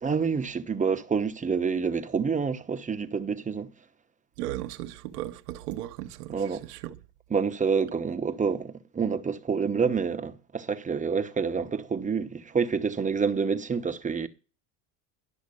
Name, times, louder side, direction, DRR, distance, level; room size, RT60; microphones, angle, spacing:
voice 1, 0.0-3.7 6.3-6.6 7.3-14.3, right 5 dB, 15° right, 1.0 m, -28 dB
voice 2, 4.4-6.3 6.7-6.9, right 14 dB, 70° right, 1.1 m, -36 dB
12.0 x 6.3 x 6.8 m
hypercardioid pair, 100°, 47 cm